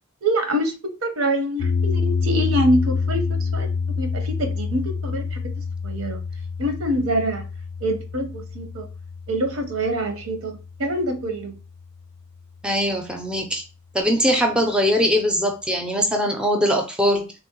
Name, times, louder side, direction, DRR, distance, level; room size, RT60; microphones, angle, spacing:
voice 1, 0.2-0.7 1.0-3.7 4.0-6.2 6.6-7.4 7.8-8.8 9.3-10.5 10.8-11.5, right 1 dB, 85° right, 0.8 m, -25 dB
sound 1, 1.6-11.8, left 5 dB, 80° left, 0.4 m, -27 dB
voice 2, 12.6-13.6 13.9-17.3, equal, 5° right, 0.4 m, -21 dB
3.4 x 2.0 x 2.9 m
head